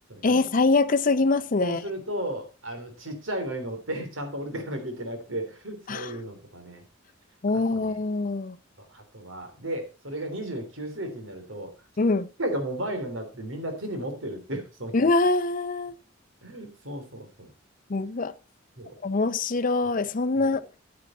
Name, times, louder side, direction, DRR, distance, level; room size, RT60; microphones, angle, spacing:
voice 1, 0.2-1.8 5.9-6.1 7.4-8.6 12.0-12.3 14.9-15.9 17.9-18.3 19.0-20.6, left 3 dB, 40° left, 0.6 m, -24 dB
voice 2, 1.6-6.8 7.5-8.0 8.8-11.7 12.4-14.9 16.4-17.5 18.8-18.9 20.3-20.5, right 1 dB, 80° right, 3.4 m, -34 dB
9.6 x 9.5 x 4.2 m
head